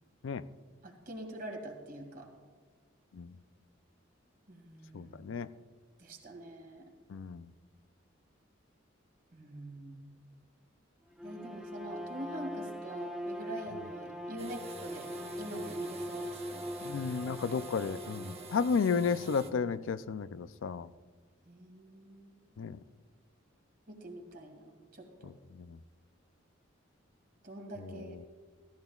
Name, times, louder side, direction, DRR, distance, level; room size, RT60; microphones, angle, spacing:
voice 1, 0.8-2.3 4.5-5.2 6.0-6.9 9.3-10.1 11.2-15.1 15.4-16.7 21.5-22.3 23.9-25.3 27.4-28.2, right 1 dB, 50° right, 2 dB, 2.2 m, -44 dB
voice 2, 4.9-5.5 7.1-7.5 16.8-20.9 22.6-22.8 25.2-25.3 25.7-25.8, left 5 dB, 75° left, 14 dB, 0.4 m, -32 dB
Bowed string instrument, 11.1-18.7, equal, ahead, 0.6 m, -42 dB
sound 1, 14.4-19.5, right 2 dB, 30° right, 0.9 m, -48 dB
14.5 x 14.0 x 2.4 m, 1.5 s
head